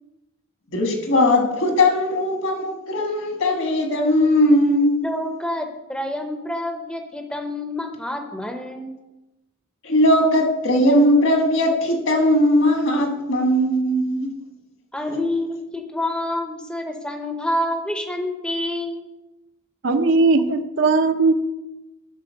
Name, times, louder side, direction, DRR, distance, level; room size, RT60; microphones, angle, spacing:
voice 1, 0.7-5.0 9.8-14.4 15.1-15.2, left 1 dB, 70° left, 3 dB, 1.6 m, -19 dB
voice 2, 5.0-9.0 14.9-19.0, left 1 dB, 5° left, 4 dB, 0.6 m, -27 dB
voice 3, 19.8-21.3, right 3 dB, 65° right, 8 dB, 0.6 m, -18 dB
9.6 x 4.1 x 6.4 m, 1.0 s
head